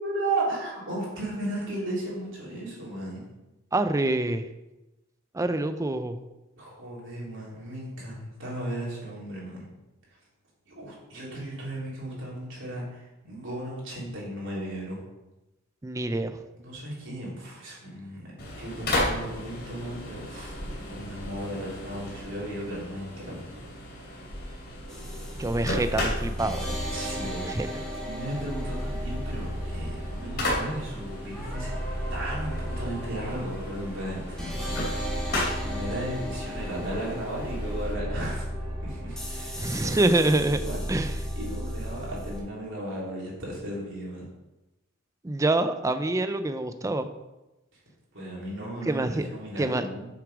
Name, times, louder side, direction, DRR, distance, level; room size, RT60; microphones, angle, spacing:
voice 1, 0.0-3.2 6.6-9.7 10.1-10.2 10.7-15.0 16.5-24.3 26.9-27.4 28.0-31.7 32.1-34.8 35.3-38.5 38.8-40.0 40.5-44.3 47.7-47.8 48.1-50.1, right 1 dB, 65° right, -5 dB, 3.3 m, -35 dB
voice 2, 3.7-4.5 5.3-6.2 15.8-16.4 25.3-26.6 27.5-27.7 39.6-40.6 40.9-41.1 45.2-47.1 48.9-49.3 49.6-49.8, right 2 dB, 15° right, 10 dB, 0.4 m, -26 dB
sound 1, 18.4-37.9, left 1 dB, 50° left, 2.8 m, -36 dB
sound 2, 24.9-42.4, equal, 5° left, 1.8 m, -34 dB
6.9 x 6.3 x 5.0 m, 1.0 s
head